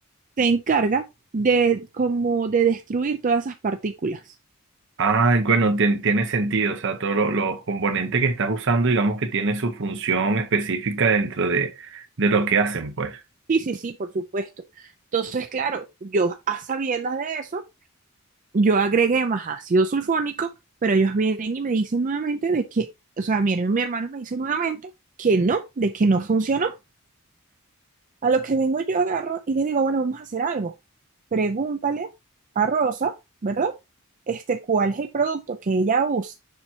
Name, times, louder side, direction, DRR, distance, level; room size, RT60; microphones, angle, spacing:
voice 1, 0.4-1.0 1.3-4.3 13.5-14.5 14.8-17.6 18.5-20.5 20.8-22.9 23.2-24.8 25.2-26.7 28.2-30.7 31.3-32.1 32.6-33.1 33.4-33.7 34.3-36.4, right 4 dB, 40° right, 0.5 m, -23 dB
voice 2, 5.0-13.2, right 4 dB, 60° right, 0.9 m, -22 dB
6.9 x 5.8 x 2.8 m
head